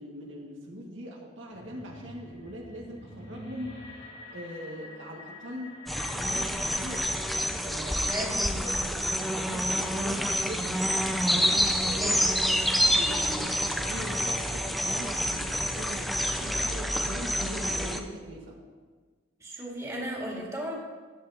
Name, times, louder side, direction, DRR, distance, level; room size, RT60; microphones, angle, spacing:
voice 1, 0.0-3.8 4.3-5.8 6.2-7.1 7.6-8.2 8.5-10.8 11.3-12.2 12.9-18.6, equal, 90° right, -2 dB, 1.9 m, -41 dB
sound 1, 1.5-7.2, left 2 dB, 75° left, 2.8 m, -46 dB
sound 2, 5.9-18.0, equal, ahead, 0.6 m, -28 dB
voice 2, 8.0-8.4 12.0-12.6 19.4-20.7, equal, 15° right, -3 dB, 2.0 m, -36 dB
14.0 x 9.4 x 2.9 m, 1.5 s
head